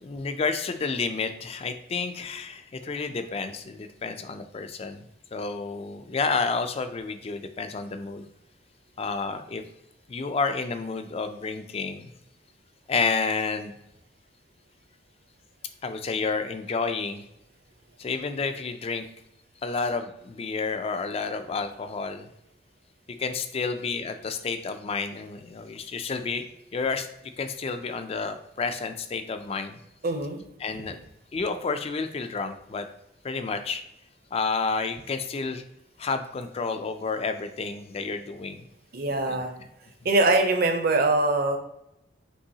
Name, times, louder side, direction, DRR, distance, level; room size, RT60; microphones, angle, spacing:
voice 1, 0.0-5.0 5.3-8.3 9.0-9.6 10.1-12.1 12.9-13.7 15.8-17.2 18.0-19.0 19.6-22.3 23.2-26.4 26.7-27.1 27.4-29.8 30.6-30.9 31.3-32.9 33.2-33.8 34.3-35.6 36.0-38.6 39.3-39.4, left 4 dB, 30° left, 9 dB, 0.3 m, -30 dB
voice 2, 30.0-30.4 38.9-39.5 40.0-41.6, right 2 dB, 50° right, 4 dB, 0.7 m, -23 dB
5.4 x 3.0 x 2.8 m, 0.81 s
head